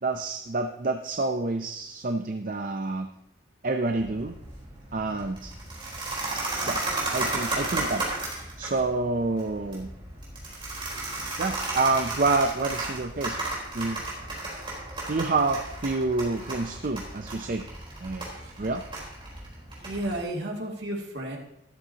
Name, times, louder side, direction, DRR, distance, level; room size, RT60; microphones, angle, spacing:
voice 1, 0.0-3.1 3.6-4.3 4.9-5.5 6.6-6.8 7.1-8.0 8.6-9.9 11.4-13.4 13.7-14.0 15.1-17.7 18.0-18.3 18.6-18.8, right 3 dB, 45° right, 6 dB, 0.6 m, -28 dB
sound 1, 3.9-20.2, right 2 dB, 25° right, 4.2 m, -34 dB
voice 2, 10.4-11.0 18.2-18.6 19.8-21.4, right 1 dB, 60° right, -1 dB, 2.5 m, -34 dB
13.5 x 12.5 x 2.9 m, 0.79 s
head